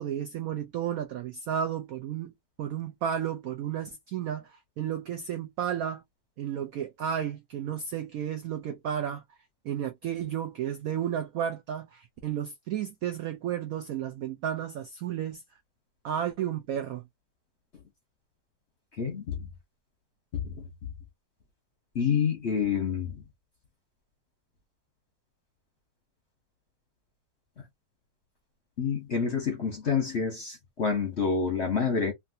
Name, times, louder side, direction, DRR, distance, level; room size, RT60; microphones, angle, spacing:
voice 1, 0.0-2.3 2.6-6.0 6.4-9.2 9.6-15.4 16.0-17.0, right 9 dB, 85° right, 0.7 m, -32 dB
voice 2, 19.0-19.4 20.3-20.5 21.9-23.2 28.8-32.1, left 6 dB, 50° left, 0.8 m, -28 dB
3.2 x 2.6 x 2.6 m
omnidirectional pair, 2.0 m